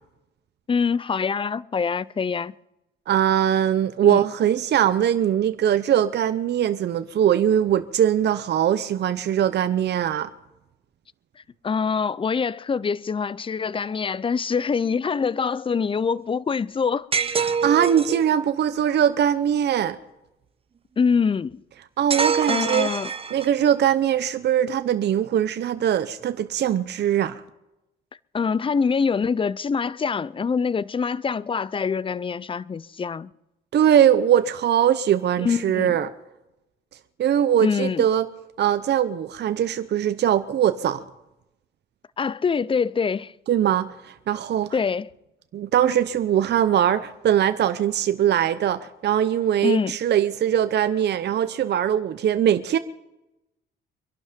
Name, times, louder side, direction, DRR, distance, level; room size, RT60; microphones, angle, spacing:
voice 1, 0.7-2.5 4.0-4.2 11.6-17.1 21.0-21.6 22.5-23.1 28.3-33.3 35.4-36.0 37.6-38.0 42.2-43.3 44.7-45.1 49.6-49.9, left 5 dB, 25° left, 0.5 m, -24 dB
voice 2, 3.1-10.3 17.4-20.0 22.0-22.9 23.3-27.4 33.7-36.1 37.2-38.3 38.6-41.0 43.5-44.7 45.5-52.8, right 10 dB, 60° right, 0.7 m, -21 dB
sound 1, 17.1-18.3 22.1-23.7, right 5 dB, 30° right, 0.9 m, -25 dB
24.5 x 11.5 x 5.2 m
cardioid pair, 90°, 20 cm